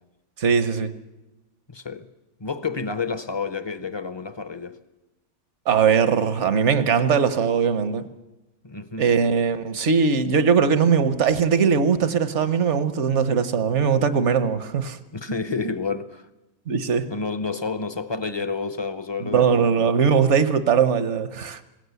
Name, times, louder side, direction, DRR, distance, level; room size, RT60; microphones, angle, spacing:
voice 1, 0.4-0.9 5.7-8.1 9.0-15.0 16.7-17.1 19.2-21.6, right 6 dB, 65° right, 1.3 m, -20 dB
voice 2, 1.7-2.1 2.4-4.8 8.6-9.1 15.1-16.3 17.1-19.9, left 4 dB, 25° left, 0.6 m, -30 dB
21.0 x 17.0 x 8.2 m
omnidirectional pair, 1.3 m